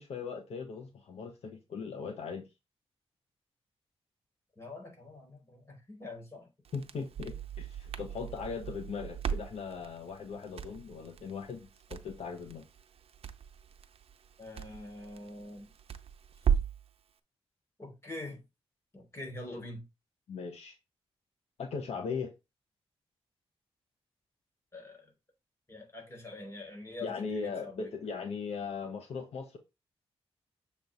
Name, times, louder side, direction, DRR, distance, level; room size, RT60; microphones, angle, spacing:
voice 1, 0.0-2.5 6.7-12.7 20.3-20.8 21.6-22.3 27.0-29.6, left 5 dB, 80° left, 1.1 m, -39 dB
voice 2, 4.6-6.5 14.4-15.7 17.8-18.4 18.9-19.8 24.7-25.1 25.7-27.9, left 2 dB, 25° left, 4.4 m, -45 dB
Crackle, 6.6-16.9, right 8 dB, 70° right, 0.7 m, -37 dB
7.0 x 3.2 x 5.3 m
wide cardioid pair, 105°, 11 cm